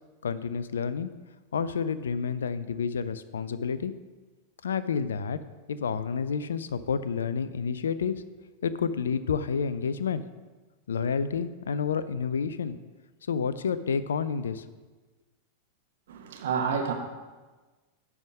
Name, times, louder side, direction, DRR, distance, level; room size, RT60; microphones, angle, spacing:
voice 1, 0.2-1.1 1.5-3.9 4.6-5.4 5.7-8.2 8.6-10.2 10.9-12.8 13.3-14.6, left 6 dB, 65° left, 14 dB, 0.4 m, -29 dB
voice 2, 16.1-16.9, right 6 dB, 60° right, 3 dB, 1.0 m, -29 dB
10.5 x 3.6 x 6.0 m, 1.3 s
figure-of-eight pair, 90°, 0 cm